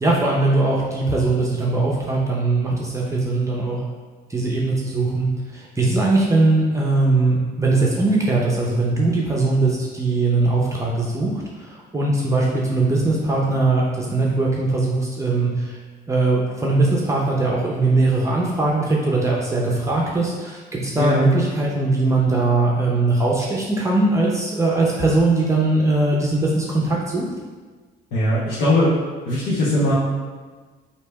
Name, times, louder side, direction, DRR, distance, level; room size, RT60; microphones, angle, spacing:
voice 1, 0.0-3.8 4.3-11.3 11.6-15.8 16.1-27.2, right 2 dB, 15° right, -3 dB, 0.6 m, -20 dB
voice 2, 21.0-21.3 28.1-28.9 29.3-29.9, left 1 dB, 85° left, -10 dB, 1.1 m, -20 dB
3.3 x 2.8 x 4.5 m, 1.4 s
cardioid pair, 110°, 17 cm